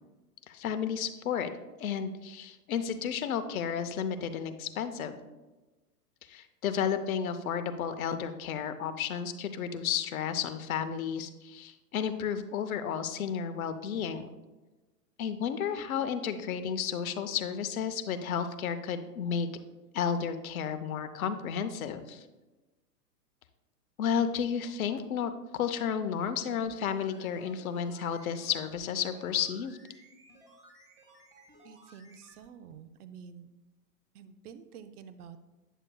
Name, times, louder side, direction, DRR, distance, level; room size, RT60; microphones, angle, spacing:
voice 1, 0.5-1.5 1.8-5.2 6.3-14.3 15.2-19.5 19.9-22.2 24.0-29.8, left 7 dB, 60° left, 9 dB, 0.7 m, -32 dB
sound 1, 26.4-32.4 32.7-32.8, right 1 dB, 10° right, 1.0 m, -57 dB
voice 2, 31.6-33.5 34.1-35.4, right 7 dB, 65° right, 9 dB, 0.6 m, -49 dB
8.9 x 6.5 x 2.3 m, 1.1 s
hypercardioid pair, 160°, 49 cm